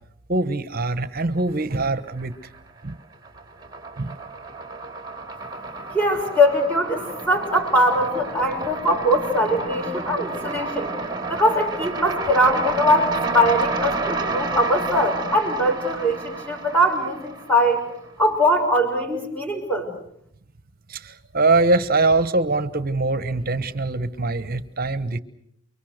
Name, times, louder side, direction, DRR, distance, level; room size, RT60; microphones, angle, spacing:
voice 1, 0.3-2.3 2.8-3.0 4.0-4.2 20.9-25.2, right 3 dB, 45° right, 13 dB, 1.2 m, -23 dB
sound 1, 1.9-2.6 2.9-18.1, right 3 dB, 20° right, 2.3 m, -30 dB
voice 2, 5.9-10.9 11.3-17.8 18.2-19.9, equal, 10° left, 1 dB, 6.1 m, -21 dB
29.5 x 24.0 x 6.6 m, 0.71 s
head